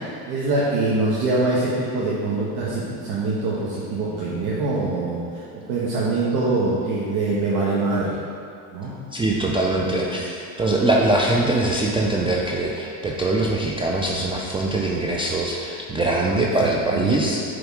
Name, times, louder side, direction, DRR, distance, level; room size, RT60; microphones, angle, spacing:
voice 1, 0.3-8.1 8.7-8.9 9.8-10.0 16.6-17.4, right 2 dB, 60° right, -7 dB, 1.3 m, -24 dB
voice 2, 9.1-17.4, right 2 dB, 10° right, -2 dB, 0.4 m, -22 dB
7.2 x 3.6 x 4.7 m, 2.4 s
supercardioid pair, 95°, 44 cm